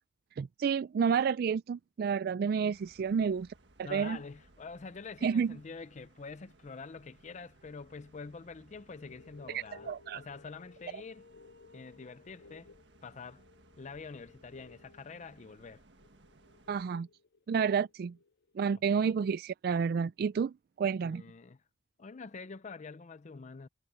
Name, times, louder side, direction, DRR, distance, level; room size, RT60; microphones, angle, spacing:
voice 1, 0.4-3.5 3.8-4.2 5.2-5.6 9.5-10.2 16.7-17.1 17.5-18.1 18.6-21.2, right 6 dB, 55° right, 0.3 m, -30 dB
sound 1, 2.7-16.8, right 2 dB, 75° right, 1.7 m, -62 dB
voice 2, 3.8-9.9 10.1-11.3 11.7-12.7 13.0-13.4 13.8-15.8 18.9-19.0 21.0-21.6 22.0-23.7, left 4 dB, 40° left, 0.5 m, -46 dB
sound 2, 8.9-19.1, left 4 dB, 60° left, 1.5 m, -59 dB
head